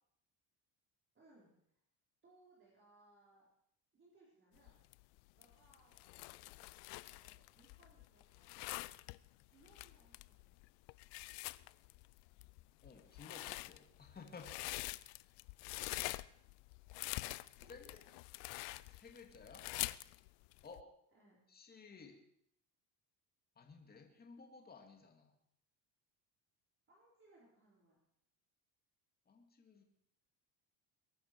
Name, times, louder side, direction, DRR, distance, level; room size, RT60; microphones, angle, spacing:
voice 1, 1.1-1.8 2.2-3.5 3.9-4.8 5.3-8.7 9.5-10.6 17.5-18.1 21.1-21.4 26.9-28.0, right 2 dB, 30° right, -5 dB, 4.4 m, -68 dB
sound 1, 4.6-20.8, left 21 dB, 90° left, 0.6 m, -46 dB
voice 2, 12.8-14.7 17.7-17.9 18.9-19.7 20.6-20.9 21.5-22.2 23.6-25.3 29.3-29.9, left 4 dB, 25° left, 3 dB, 2.4 m, -56 dB
22.0 x 11.5 x 4.7 m, 0.72 s
cardioid pair, 135°, 40 cm